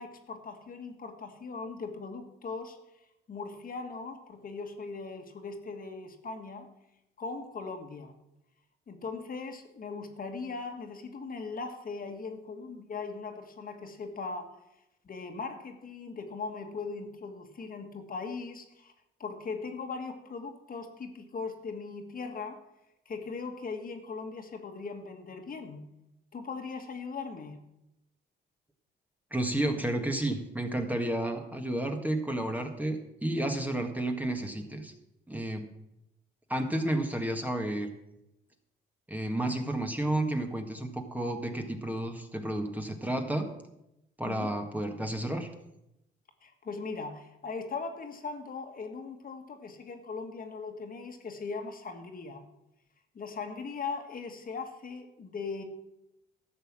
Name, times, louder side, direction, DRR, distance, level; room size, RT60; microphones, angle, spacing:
voice 1, 0.0-2.8 3.3-6.7 7.2-8.1 8.9-14.5 15.0-18.9 19.2-22.6 23.0-25.8 26.3-27.6 44.2-44.5 46.4-52.4 53.1-55.6, left 4 dB, 45° left, 5 dB, 1.7 m, -39 dB
voice 2, 29.3-34.9 35.3-35.7 36.5-37.9 39.1-43.5 44.2-45.5, right 1 dB, 10° right, 4 dB, 1.7 m, -31 dB
12.5 x 7.0 x 7.5 m, 0.87 s
cardioid pair, 90°, 20 cm